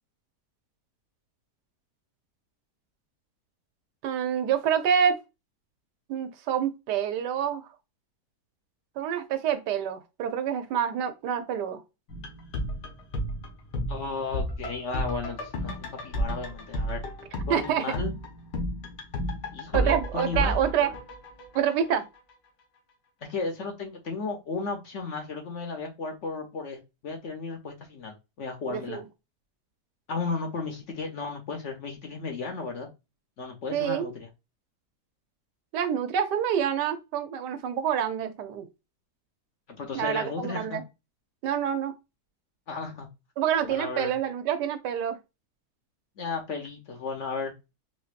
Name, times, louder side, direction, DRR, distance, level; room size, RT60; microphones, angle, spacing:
voice 1, 4.0-5.2 6.1-7.7 9.0-11.8 17.5-17.9 19.7-20.9 21.5-22.0 28.7-29.1 33.7-34.1 35.7-38.7 39.9-40.8 41.4-41.9 43.4-45.2, right 8 dB, 85° right, 1.3 m, -27 dB
sound 1, 12.1-22.0 22.3-22.4, equal, 85° left, 1.6 m, -32 dB
voice 2, 13.9-17.0 17.5-18.1 19.5-20.6 23.2-29.0 30.1-32.9 33.4-34.3 39.8-40.8 42.7-43.1 43.7-44.1 46.2-47.5, left 4 dB, 55° left, 0.9 m, -34 dB
4.3 x 2.6 x 2.5 m
omnidirectional pair, 1.8 m